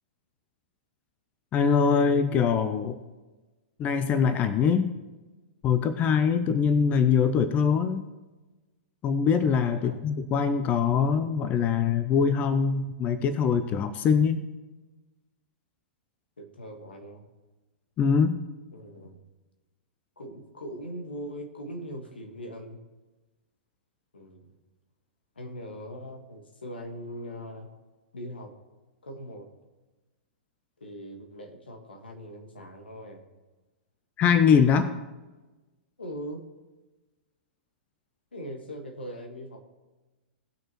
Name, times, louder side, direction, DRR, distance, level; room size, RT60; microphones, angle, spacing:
voice 1, 1.5-3.0 3.8-4.9 5.6-8.1 9.0-14.4 18.0-18.4 34.2-34.9, left 6 dB, 30° left, 11 dB, 0.7 m, -23 dB
voice 2, 9.7-10.0 16.4-17.3 18.7-19.2 20.2-22.8 24.1-24.5 25.4-27.7 28.1-28.5 29.0-29.5 30.8-33.2 36.0-36.4 38.3-39.6, equal, 85° left, 3 dB, 1.8 m, -40 dB
18.5 x 6.3 x 3.1 m, 1.2 s
figure-of-eight pair, 110°, 5 cm